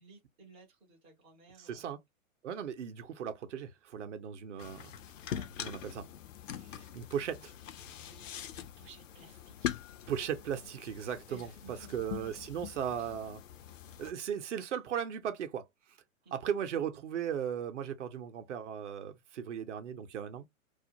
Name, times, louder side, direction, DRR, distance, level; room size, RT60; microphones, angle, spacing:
voice 1, 0.0-1.9 5.3-5.5 8.1-8.2 8.5-9.8 11.3-12.1 13.0-13.1 16.2-16.4, right 4 dB, 10° right, 0.4 m, -56 dB
voice 2, 1.6-2.0 2.4-4.9 5.6-6.0 6.7-7.5 10.1-13.4 14.0-15.6 16.3-20.5, right 8 dB, 55° right, 0.7 m, -37 dB
sound 1, 4.6-14.1, left 10 dB, 65° left, 0.5 m, -43 dB
2.4 x 2.1 x 2.7 m
figure-of-eight pair, 115°, 42 cm